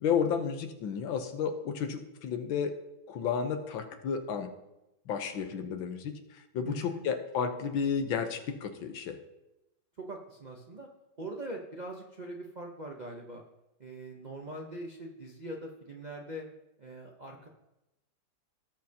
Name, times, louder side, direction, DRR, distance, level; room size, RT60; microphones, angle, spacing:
voice 1, 0.0-2.8 3.1-4.5 5.1-9.2, left 6 dB, 75° left, 6 dB, 1.6 m, -32 dB
voice 2, 6.6-7.0 10.0-10.9 11.2-13.4 13.8-16.5 16.8-17.5, right 1 dB, 90° right, -1 dB, 0.4 m, -42 dB
18.0 x 6.5 x 2.8 m, 0.93 s
omnidirectional pair, 2.2 m